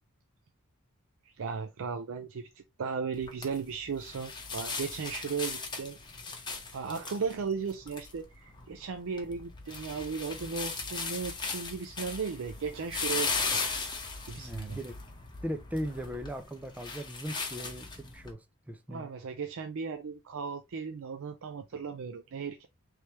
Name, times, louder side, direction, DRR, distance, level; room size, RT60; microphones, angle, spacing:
voice 1, 1.2-6.0 6.7-13.3 14.2-14.8 18.9-22.7, right 5 dB, 65° right, 0.4 m, -36 dB
sound 1, 3.1-18.3, left 4 dB, 20° left, 0.9 m, -38 dB
voice 2, 14.4-15.0 15.4-19.1, equal, 5° right, 0.4 m, -38 dB
3.3 x 3.1 x 4.1 m
head